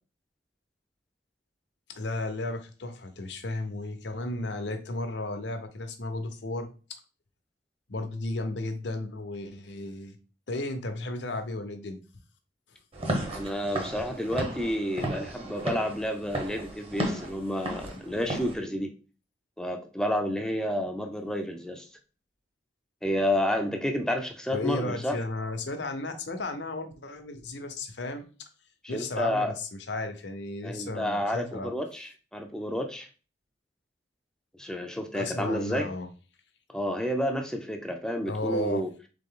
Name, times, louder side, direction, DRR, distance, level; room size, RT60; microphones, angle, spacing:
voice 1, 1.9-7.0 7.9-10.1 10.5-12.0 17.9-18.0 24.5-28.3 28.9-31.7 35.1-36.1 38.3-38.8, left 2 dB, 75° left, 7 dB, 0.8 m, -34 dB
Walk footsteps / Siren, 12.9-18.5, right 1 dB, 35° right, 0.9 m, -34 dB
voice 2, 13.3-18.9 19.6-21.9 23.0-25.2 28.9-29.5 30.6-33.1 34.6-35.9 36.7-38.9, equal, 5° left, 4 dB, 0.4 m, -30 dB
3.8 x 3.8 x 3.7 m, 0.36 s
head